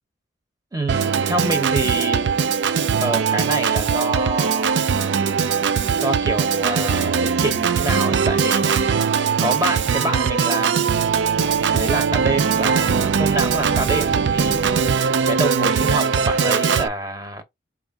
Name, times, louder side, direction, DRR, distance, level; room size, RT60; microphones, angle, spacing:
voice 1, 0.7-2.3 3.0-4.9 6.0-8.7 9.4-11.1 11.6-17.4, right 1 dB, 20° right, 0.9 m, -27 dB
Organ, 0.9-16.9, right 6 dB, 60° right, 0.4 m, -20 dB
4.9 x 2.5 x 3.6 m
head